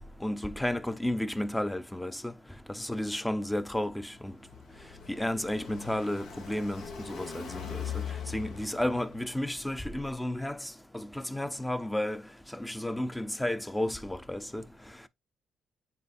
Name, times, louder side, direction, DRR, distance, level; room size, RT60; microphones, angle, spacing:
voice 1, 0.2-2.3 2.7-4.3 5.1-8.0 8.3-12.2 12.5-14.6, left 1 dB, 5° left, 0.6 m, -32 dB
Car passing by, 4.1-9.5, left 7 dB, 75° left, 1.5 m, -41 dB
9.3 x 4.0 x 2.6 m
cardioid pair, 90°, 0 cm